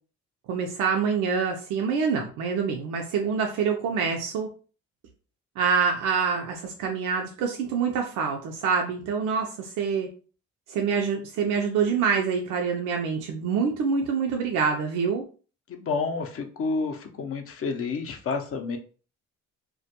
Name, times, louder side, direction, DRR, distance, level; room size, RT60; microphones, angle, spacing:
voice 1, 0.5-4.5 5.6-10.1 10.7-15.2, right 6 dB, 85° right, 2 dB, 0.5 m, -26 dB
voice 2, 15.7-18.8, left 4 dB, 50° left, 6 dB, 0.5 m, -29 dB
2.2 x 2.1 x 2.7 m, 0.37 s
cardioid pair, 90°, 30 cm